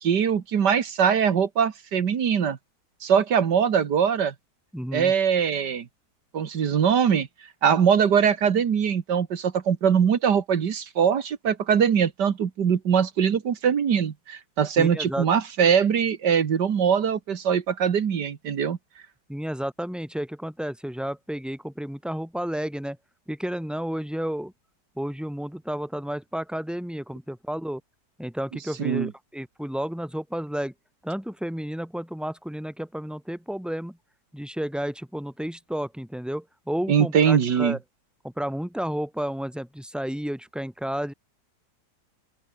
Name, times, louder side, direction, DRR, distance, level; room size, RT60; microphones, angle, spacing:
voice 1, 0.0-2.6 3.0-4.3 4.9-5.9 6.3-7.3 7.6-18.8 28.8-29.1 36.9-37.8, right 7 dB, 80° right, 2.1 m, -22 dB
voice 2, 4.7-5.1 14.8-15.3 19.3-23.0 23.3-24.5 25.0-27.8 28.2-30.7 31.0-34.0 34.3-37.8 38.2-41.1, equal, ahead, 4.3 m, -31 dB
open air
omnidirectional pair, 1.8 m